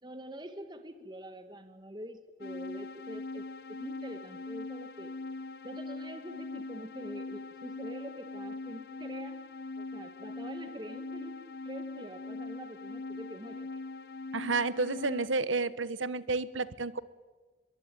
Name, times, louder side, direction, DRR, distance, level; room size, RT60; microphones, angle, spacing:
voice 1, 0.0-5.1 5.6-9.4 9.8-11.3 11.6-13.8, right 1 dB, 20° right, 9 dB, 1.7 m, -45 dB
sound 1, 2.4-15.3, left 3 dB, 55° left, 0.8 m, -41 dB
voice 2, 14.3-17.0, right 3 dB, 80° right, 16 dB, 1.2 m, -31 dB
23.5 x 22.0 x 9.3 m, 1.3 s
head